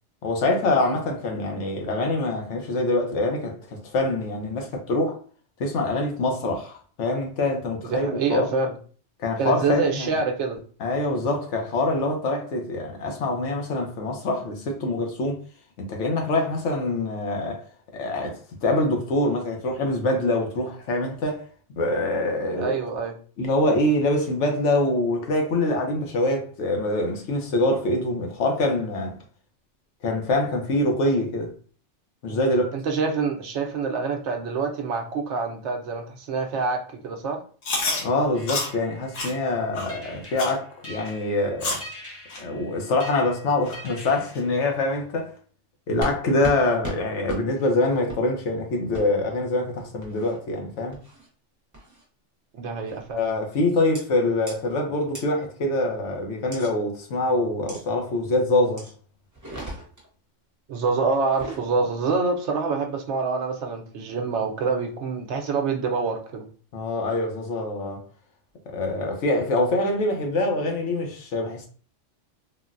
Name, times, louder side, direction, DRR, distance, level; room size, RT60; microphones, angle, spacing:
voice 1, 0.2-5.2 5.6-8.5 9.2-10.1 10.8-15.4 15.8-17.6 17.9-21.4 21.8-22.8 23.4-29.2 30.0-31.5 32.2-32.7 38.0-41.8 42.4-45.3 45.9-51.0 53.1-58.9 66.7-68.0 68.7-71.7, left 2 dB, 70° left, 1.0 m, -25 dB
voice 2, 7.8-8.8 9.4-10.6 22.6-23.1 32.3-32.4 32.7-37.4 52.5-53.2 60.7-66.5, right 4 dB, 70° right, 0.9 m, -26 dB
Chewing mastication, 37.6-38.0 38.5-38.7 39.1-39.3 39.7-39.9 40.4-40.6 41.1-41.2 41.6-41.9 42.3-42.4 43.0-43.1 43.7-43.8 44.3-44.4, left 3 dB, 90° left, 1.3 m, -28 dB
sound 1, 38.3-45.0, left 1 dB, 15° left, 0.5 m, -45 dB
sound 2, 46.0-46.2 46.4-46.6 46.8-47.0 47.3-47.4 48.1-48.2 48.9-49.0 50.0-50.4 50.9-51.3 51.7-52.0 52.9-53.1 53.9-54.0 54.5-54.6 55.1-55.2 56.5-56.7 57.7-57.8 58.8-58.9 59.3-60.1 61.2-61.6, right 1 dB, 15° right, 0.7 m, -36 dB
3.8 x 2.1 x 2.4 m
omnidirectional pair, 1.3 m